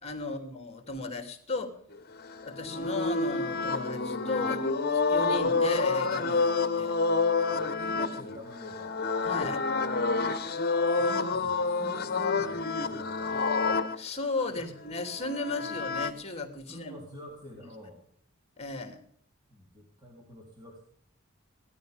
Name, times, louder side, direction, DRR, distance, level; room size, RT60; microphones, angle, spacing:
voice 1, 0.0-1.8 2.4-4.6 4.9-7.0 9.2-9.6 14.0-16.9 18.6-19.0, left 2 dB, 30° left, 6 dB, 3.0 m, -35 dB
sound 1, 2.2-14.0 15.1-16.1, left 4 dB, 50° left, 1.4 m, -28 dB
voice 2, 7.6-9.0 10.7-13.4 14.5-14.7 16.6-18.0 19.5-20.8, equal, 20° right, -2 dB, 3.6 m, -47 dB
18.0 x 13.0 x 5.2 m, 0.64 s
head